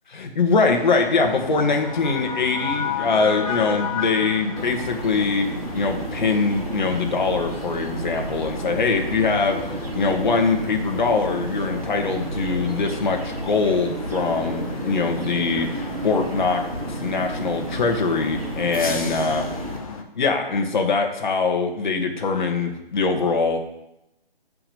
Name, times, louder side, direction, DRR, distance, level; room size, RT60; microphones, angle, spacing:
voice 1, 0.1-5.5 5.7-19.6 20.1-23.6, left 4 dB, 50° left, 3 dB, 2.2 m, -23 dB
sound 1, 0.7-20.0, left 6 dB, 35° left, 1.2 m, -34 dB
sound 2, 4.6-19.8, right 2 dB, 80° right, 2.5 m, -32 dB
11.0 x 6.0 x 8.1 m, 0.87 s
figure-of-eight pair, 155°, 29 cm